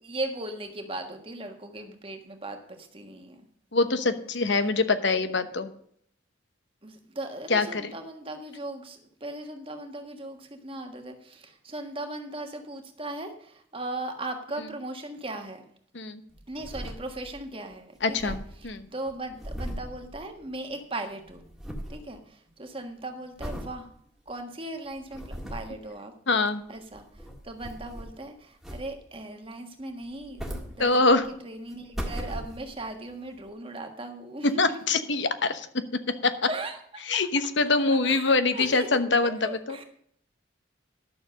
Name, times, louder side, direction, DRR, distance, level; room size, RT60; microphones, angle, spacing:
voice 1, 0.0-3.4 6.8-15.6 16.5-21.4 21.9-23.9 24.3-26.1 26.7-34.8 36.5-37.2 38.0-39.8, right 2 dB, 30° right, 5 dB, 1.5 m, -38 dB
voice 2, 3.7-5.7 7.5-7.9 15.9-16.2 18.0-18.4 18.6-18.8 26.3-26.6 30.8-31.3 34.6-35.7 36.2-36.3 37.1-39.8, left 3 dB, 65° left, 10 dB, 1.1 m, -24 dB
sound 1, 16.3-17.5 17.7-17.8 18.0-20.8 21.0-22.1 22.5-22.8 23.4-23.8 24.3-24.4 24.9-25.8 26.8-28.2 28.6-29.2 30.0-31.3 31.7-32.9 33.5-33.6, equal, ahead, 1.7 m, -38 dB
12.0 x 6.9 x 6.5 m, 0.65 s
head